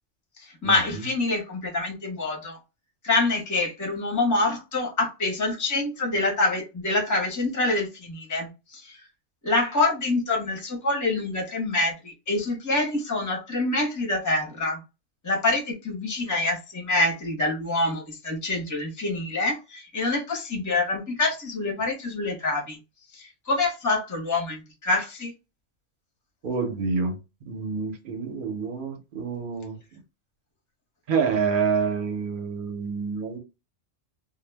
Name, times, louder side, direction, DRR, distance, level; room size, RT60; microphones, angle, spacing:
voice 1, 0.6-2.6 3.0-9.0 9.4-14.8 15.2-22.8 23.1-25.3, left 2 dB, 20° left, 0.6 m, -26 dB
voice 2, 26.4-29.8 31.1-33.4, right 5 dB, 50° right, 0.8 m, -27 dB
2.2 x 2.1 x 3.2 m
omnidirectional pair, 1.3 m